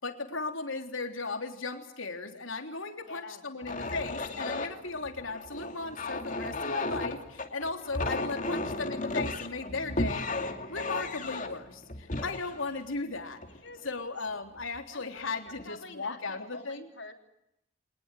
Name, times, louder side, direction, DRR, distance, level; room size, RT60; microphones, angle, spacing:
voice 1, 0.0-10.4 10.7-13.4 13.8-16.8, left 3 dB, 80° left, 5 dB, 3.5 m, -36 dB
voice 2, 3.0-3.5 13.6-14.1 14.9-17.1, left 3 dB, 65° left, 5 dB, 3.6 m, -47 dB
sound 1, 3.6-13.9 14.5-14.8 15.2-15.7, left 2 dB, 40° left, 2.5 m, -35 dB
Bass guitar, 9.7-13.4, right 2 dB, 20° right, 3.9 m, -53 dB
26.0 x 20.0 x 9.3 m, 0.83 s
head